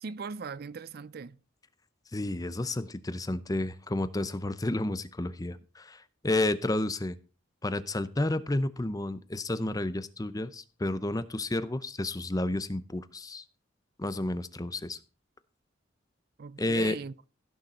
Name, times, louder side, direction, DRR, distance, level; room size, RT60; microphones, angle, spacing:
voice 1, 0.0-1.4 16.4-17.1, right 5 dB, 50° right, 0.4 m, -39 dB
voice 2, 2.1-7.2 7.6-13.4 14.0-15.0 16.6-17.0, left 2 dB, 20° left, 0.6 m, -31 dB
16.0 x 6.6 x 4.2 m
head